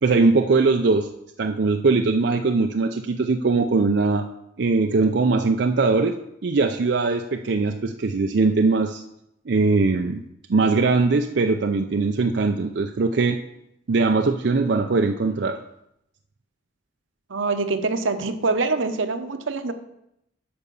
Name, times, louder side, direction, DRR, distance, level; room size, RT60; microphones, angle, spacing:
voice 1, 0.0-1.1 1.4-4.3 4.6-6.2 6.4-9.0 9.5-10.2 10.5-13.4 13.9-15.6, right 3 dB, 60° right, 5 dB, 0.5 m, -21 dB
voice 2, 17.3-19.7, right 3 dB, 85° right, 9 dB, 0.9 m, -24 dB
8.7 x 5.4 x 7.0 m, 0.81 s
head